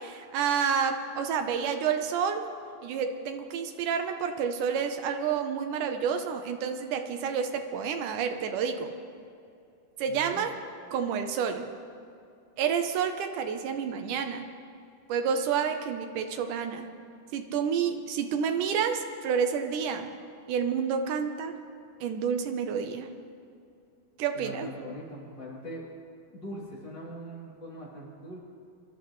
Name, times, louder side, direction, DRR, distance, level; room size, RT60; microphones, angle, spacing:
voice 1, 0.0-2.5 2.8-8.9 10.0-10.5 10.9-11.6 12.6-14.4 15.1-16.9 17.3-20.1 20.5-21.6 22.0-23.1 24.2-24.7, right 7 dB, 75° right, 6 dB, 2.2 m, -29 dB
voice 2, 10.1-10.5 24.3-25.8 26.3-28.4, equal, 30° left, -7 dB, 3.6 m, -41 dB
26.0 x 12.0 x 3.1 m, 2.5 s
omnidirectional pair, 4.0 m